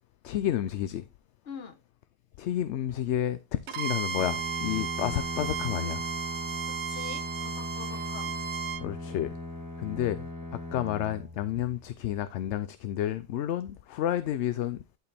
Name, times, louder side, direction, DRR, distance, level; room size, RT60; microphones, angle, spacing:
voice 1, 0.2-1.0 2.4-6.0 7.9-8.0 8.8-9.3 9.8-14.8, left 11 dB, 75° left, 0.8 m, -31 dB
voice 2, 1.4-1.8 6.7-8.4, left 6 dB, 55° left, 1.4 m, -44 dB
Bowed string instrument, 3.7-8.9, right 7 dB, 70° right, 1.0 m, -34 dB
Bowed string instrument 2, 4.1-12.1, left 1 dB, 15° right, 1.7 m, -39 dB
11.5 x 4.7 x 3.4 m
omnidirectional pair, 1.2 m